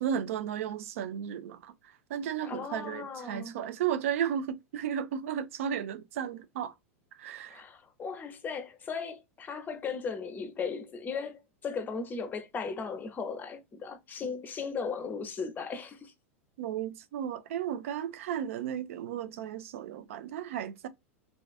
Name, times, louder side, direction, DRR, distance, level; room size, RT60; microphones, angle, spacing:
voice 1, 0.0-1.7 2.1-6.7 7.2-7.6 16.6-20.9, right 9 dB, 70° right, 0.4 m, -34 dB
voice 2, 2.4-3.6 7.5-16.1, left 5 dB, 25° left, 0.6 m, -37 dB
2.3 x 2.3 x 2.4 m
hypercardioid pair, 100°, 8 cm